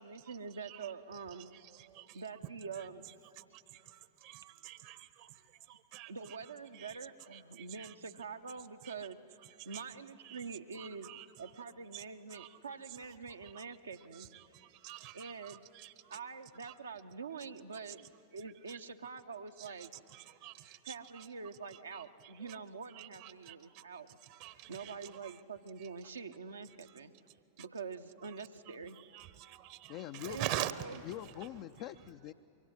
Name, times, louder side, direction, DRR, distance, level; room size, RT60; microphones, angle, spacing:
voice 1, 0.0-1.5 2.1-3.4 6.1-11.1 11.4-14.3 14.6-15.7 16.1-20.0 20.8-24.2 24.7-27.1 27.6-29.0 30.3-31.0, right 5 dB, 75° right, 0.8 m, -45 dB
voice 2, 3.4-5.3 5.7-6.1 6.8-6.9 7.8-7.9 9.7-9.8 10.3-10.4 10.8-11.2 11.9-12.0 12.3-12.5 13.6-13.7 14.5-16.2 20.1-20.9 21.9-22.0 23.0-23.8 24.3-24.9 29.1-30.7, right 14 dB, 45° right, 0.9 m, -44 dB
voice 3, 29.9-30.5 31.0-32.3, left 13 dB, 45° left, 0.5 m, -44 dB
25.0 x 23.5 x 8.2 m
figure-of-eight pair, 90°, 0 cm